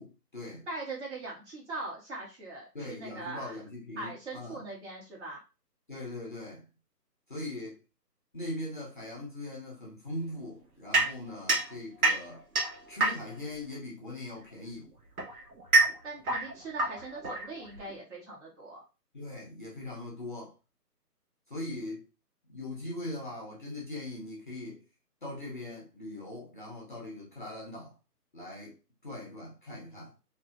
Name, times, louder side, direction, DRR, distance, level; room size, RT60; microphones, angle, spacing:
voice 1, 0.0-0.7 2.7-4.6 5.9-6.7 7.3-7.8 8.3-12.5 12.9-14.9 19.1-20.5 21.5-22.1 22.5-24.8 25.2-28.0 28.3-28.8 29.0-30.1, left 1 dB, 30° left, 0.7 m, -40 dB
voice 2, 0.7-3.6 4.0-5.4 16.0-18.8, right 2 dB, 45° right, 1.9 m, -41 dB
sound 1, 10.9-13.5 14.6-17.9, right 2 dB, 60° right, 1.4 m, -28 dB
3.5 x 2.6 x 2.4 m
figure-of-eight pair, 155°, 49 cm